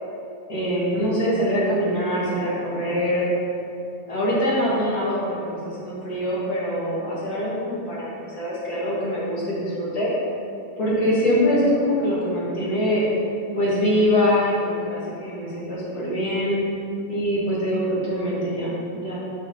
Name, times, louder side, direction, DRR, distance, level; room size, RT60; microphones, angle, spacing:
voice 1, 0.5-3.2 4.1-10.1 10.8-13.1 13.5-16.5 17.1-19.2, equal, 40° left, -7 dB, 1.5 m, -23 dB
5.5 x 4.6 x 5.4 m, 2.7 s
omnidirectional pair, 3.5 m